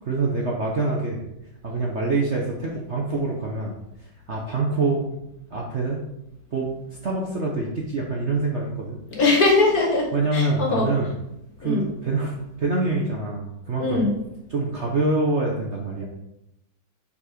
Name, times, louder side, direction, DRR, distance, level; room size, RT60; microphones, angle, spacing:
voice 1, 0.0-1.2 1.6-3.8 4.3-5.2 5.5-6.0 6.5-6.7 7.0-9.0 10.1-11.1 11.6-14.0 14.5-16.1, right 3 dB, 50° right, -2 dB, 0.9 m, -25 dB
voice 2, 9.1-10.1 10.3-10.8 11.6-11.9 13.8-14.1, left 3 dB, 50° left, 0 dB, 1.8 m, -20 dB
7.1 x 4.3 x 5.0 m, 0.88 s
omnidirectional pair, 2.1 m